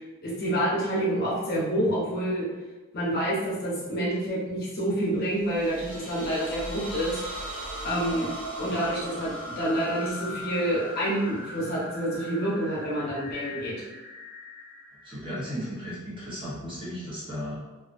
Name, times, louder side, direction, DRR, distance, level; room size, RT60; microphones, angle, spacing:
voice 1, 0.0-2.4 2.9-7.2 7.8-8.3 8.6-13.7, right 1 dB, 45° left, -7 dB, 0.8 m, -28 dB
sound 1, 5.3-15.9, equal, 85° right, 0.7 m, -39 dB
voice 2, 15.0-17.6, equal, 25° right, -9 dB, 0.8 m, -35 dB
2.7 x 2.3 x 2.5 m, 1.2 s
head